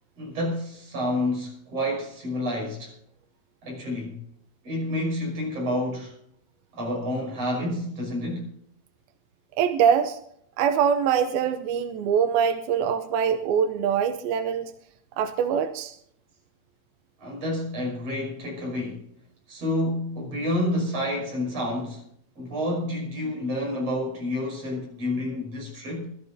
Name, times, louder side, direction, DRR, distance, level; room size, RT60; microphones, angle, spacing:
voice 1, 0.2-2.9 3.6-4.2 4.6-6.1 6.7-8.5 17.2-19.0 19.5-22.0 22.4-26.2, left 1 dB, 45° right, 6.9 m, -29 dB
voice 2, 9.6-10.2 10.6-14.7 15.2-16.0, right 7 dB, 90° right, 2.6 m, -23 dB
23.5 x 13.5 x 2.7 m
omnidirectional pair, 4.2 m